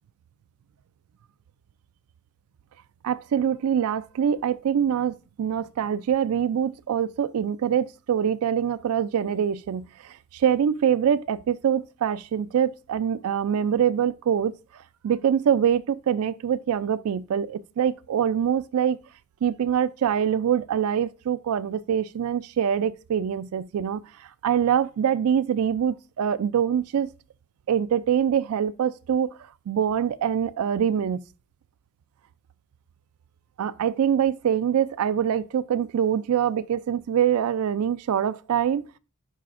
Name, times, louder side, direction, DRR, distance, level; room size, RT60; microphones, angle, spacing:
voice 1, 3.0-14.5 15.0-19.0 19.4-24.0 24.4-27.1 27.7-29.4 29.7-31.2 33.6-38.8, right 8 dB, 80° right, 0.3 m, -24 dB
10.5 x 4.2 x 2.5 m
head